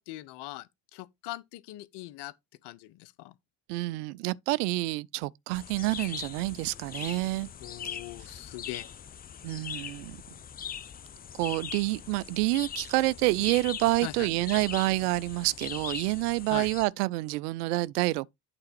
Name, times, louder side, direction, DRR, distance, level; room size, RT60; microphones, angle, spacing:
voice 1, 0.0-2.3 2.6-3.3 7.6-8.9 14.0-14.3 16.5-16.7, left 17 dB, 55° left, 0.7 m, -41 dB
voice 2, 3.7-7.5 9.4-10.2 11.4-18.3, right 20 dB, 70° right, 0.5 m, -28 dB
sound 1, 5.5-16.8, left 8 dB, 20° left, 0.4 m, -41 dB
8.8 x 3.7 x 4.4 m
figure-of-eight pair, 50°, 49 cm